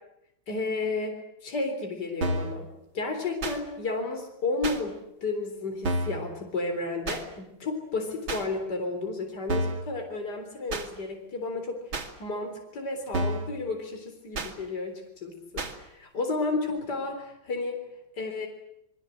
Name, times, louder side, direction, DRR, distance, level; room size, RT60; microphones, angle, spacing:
voice 1, 0.5-2.7 2.9-4.9 5.2-11.8 12.2-17.8 18.2-18.5, left 3 dB, 55° left, 4 dB, 4.3 m, -32 dB
sound 1, 2.2-2.5 3.4-3.6 4.6-4.8 5.8-6.2 7.1-7.2 8.3-8.4 9.5-9.8 10.7-10.9 11.9-12.1 13.1-13.5 14.3-14.5 15.6-15.7, right 1 dB, 90° right, 3.3 m, -29 dB
28.0 x 22.5 x 8.0 m, 0.79 s
omnidirectional pair, 2.1 m